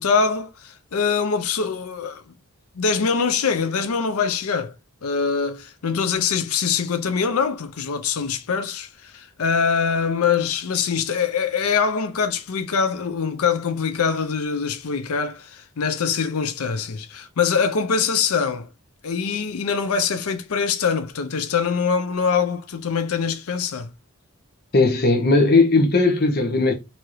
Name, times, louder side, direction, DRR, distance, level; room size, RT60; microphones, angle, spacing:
voice 1, 0.0-2.2 2.8-4.7 5.0-18.7 19.0-23.9, left 6 dB, 80° left, 0.5 m, -23 dB
voice 2, 24.7-26.7, left 3 dB, 45° left, 0.8 m, -17 dB
4.7 x 2.7 x 3.0 m
head